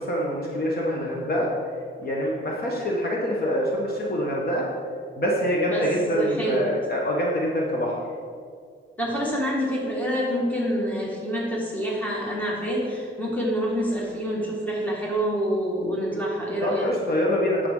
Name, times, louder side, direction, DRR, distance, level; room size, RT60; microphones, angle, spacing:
voice 1, 0.0-1.5 2.0-4.6 5.2-8.0 16.6-17.7, equal, 45° left, -2 dB, 1.2 m, -25 dB
voice 2, 6.1-6.7 9.0-16.9, equal, 5° left, -4 dB, 1.9 m, -27 dB
9.3 x 6.7 x 3.8 m, 2.1 s
wide cardioid pair, 135°, 21 cm